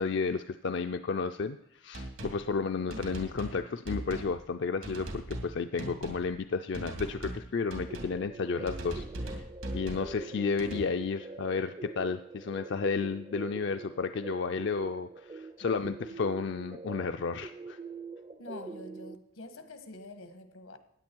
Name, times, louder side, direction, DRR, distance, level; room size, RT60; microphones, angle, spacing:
voice 1, 0.0-9.4 9.7-17.8, left 4 dB, 55° left, 8 dB, 0.4 m, -32 dB
sound 1, 1.9-2.4 2.9-3.6 3.9-4.3 4.8-5.5 5.8-6.2 6.7-7.4 7.7-8.1 8.7-10.1 10.6-10.8, right 1 dB, 85° right, 2.8 m, -39 dB
sound 2, 7.9-19.2, right 3 dB, 25° right, 0.4 m, -44 dB
voice 2, 18.4-20.8, left 2 dB, 85° left, 9 dB, 1.4 m, -46 dB
16.0 x 9.8 x 4.5 m, 0.82 s
head